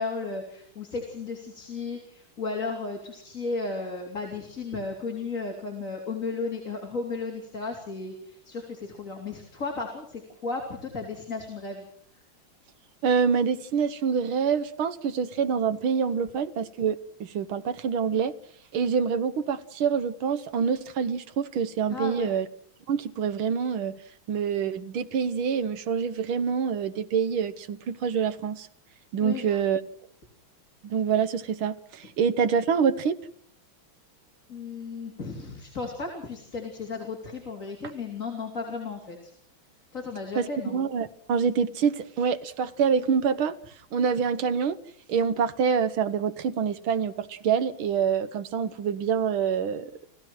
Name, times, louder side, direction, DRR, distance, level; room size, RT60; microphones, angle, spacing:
voice 1, 0.0-11.9 21.9-22.3 29.2-29.6 34.5-39.3 39.9-40.8, left 4 dB, 40° left, 3.8 m, -34 dB
voice 2, 13.0-18.3 18.7-22.5 22.9-24.0 24.3-28.7 29.1-29.8 30.8-33.1 40.4-43.6 43.9-44.8 45.1-49.9, right 6 dB, 80° right, 2.0 m, -26 dB
30.0 x 16.0 x 6.2 m
omnidirectional pair, 2.2 m